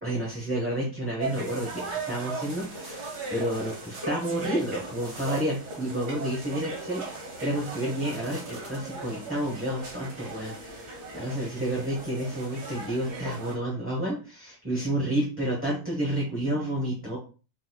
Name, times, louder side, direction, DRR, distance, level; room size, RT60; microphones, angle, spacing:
voice 1, 0.0-17.2, right 1 dB, 10° right, -5 dB, 0.7 m, -30 dB
sound 1, 1.2-13.5, right 3 dB, 75° right, 1.7 m, -38 dB
sound 2, 1.5-4.0 4.5-4.6 5.0-5.4 5.8-5.9 6.8-7.1 7.5-8.9 10.1-10.2, right 2 dB, 40° right, 1.4 m, -49 dB
4.1 x 4.0 x 2.3 m, 0.34 s
omnidirectional pair, 1.7 m